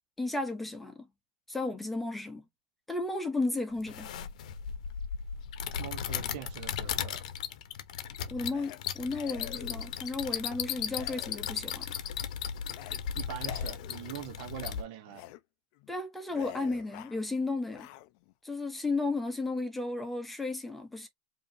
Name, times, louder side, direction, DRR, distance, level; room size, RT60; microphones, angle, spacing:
voice 1, 0.2-1.1 1.5-2.4 2.9-4.1 8.3-11.9 15.9-17.9 18.4-21.1, left 3 dB, 5° left, 0.8 m, -34 dB
sound 1, 3.8-14.8, left 8 dB, 75° left, 0.8 m, -36 dB
voice 2, 5.8-7.2 13.2-15.3, right 11 dB, 45° right, 0.7 m, -42 dB
sound 2, 8.5-8.8 9.1-10.0 10.9-11.8 12.7-13.0 13.4-14.3 15.1-15.4 15.7-15.9 16.3-17.2 17.6-18.3, left 16 dB, 45° left, 0.4 m, -48 dB
5.0 x 2.8 x 2.6 m
supercardioid pair, 165°, 4 cm